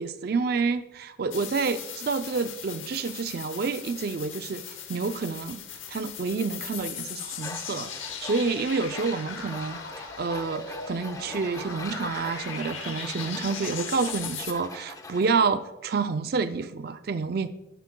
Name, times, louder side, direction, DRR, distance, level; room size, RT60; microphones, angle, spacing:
voice 1, 0.0-4.6 4.9-5.6 5.9-17.5, right 4 dB, 50° right, 10 dB, 0.4 m, -29 dB
sound 1, 1.3-14.5, left 7 dB, 80° left, 0.9 m, -39 dB
Tools, 7.4-15.3, left 2 dB, 15° left, 0.5 m, -41 dB
10.5 x 8.0 x 2.2 m, 0.97 s
head